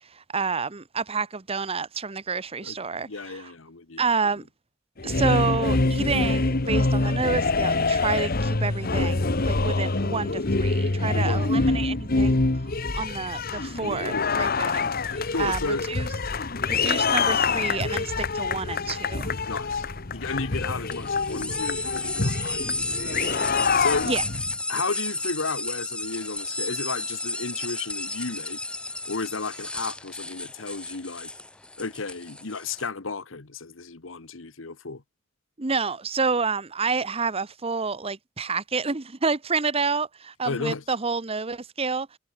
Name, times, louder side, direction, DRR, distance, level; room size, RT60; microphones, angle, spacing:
voice 1, 0.1-3.5 4.0-4.4 5.0-12.4 12.9-16.1 16.7-19.3 24.0-24.2 35.6-42.2, right 4 dB, 30° right, 1.0 m, -29 dB
voice 2, 3.0-4.0 11.1-11.8 13.8-14.5 15.3-15.9 16.7-16.9 19.4-19.9 20.1-23.0 23.8-24.1 24.7-28.6 29.0-31.3 31.8-35.0 40.4-40.8, left 3 dB, 70° left, 1.3 m, -33 dB
sound 1, 5.0-24.5, left 3 dB, 45° left, 1.3 m, -25 dB
sound 2, 20.9-32.9, left 2 dB, 5° left, 0.4 m, -33 dB
head